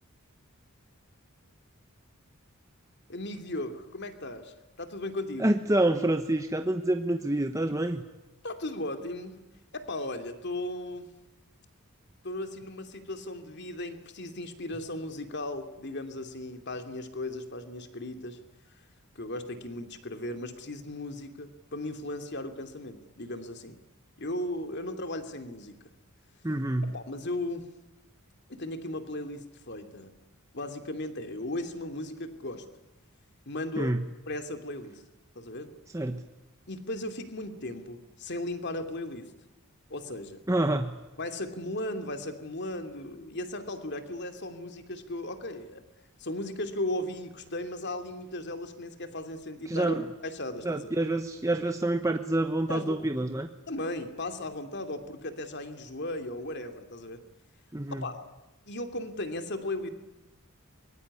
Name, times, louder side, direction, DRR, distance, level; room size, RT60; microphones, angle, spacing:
voice 1, 3.1-5.5 8.4-9.4 9.7-11.1 12.2-18.4 19.1-23.8 24.2-25.8 26.9-27.7 28.5-30.2 30.5-32.6 33.5-33.9 34.3-35.0 35.4-35.7 36.7-39.3 39.9-40.4 41.2-45.8 46.2-50.0 50.2-50.9 52.7-53.0 53.7-57.2 57.9-58.3 58.7-59.9, left 1 dB, 50° left, 7 dB, 2.7 m, -36 dB
voice 2, 5.4-8.0 26.4-26.9 33.8-34.1 35.9-36.2 40.5-41.0 49.7-50.0 50.6-53.5 57.7-58.0, right 1 dB, 15° right, 6 dB, 1.0 m, -27 dB
24.0 x 22.5 x 9.8 m, 1.0 s
head